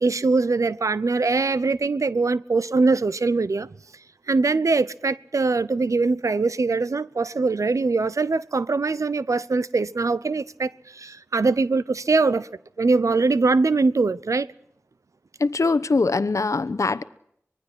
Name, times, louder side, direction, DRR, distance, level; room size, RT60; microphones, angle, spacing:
voice 1, 0.0-3.7 4.3-12.5 12.8-14.5, right 3 dB, 85° right, 0.8 m, -22 dB
voice 2, 15.4-17.0, left 3 dB, 75° left, 1.0 m, -22 dB
25.0 x 21.5 x 6.2 m
wide cardioid pair, 60°, 5 cm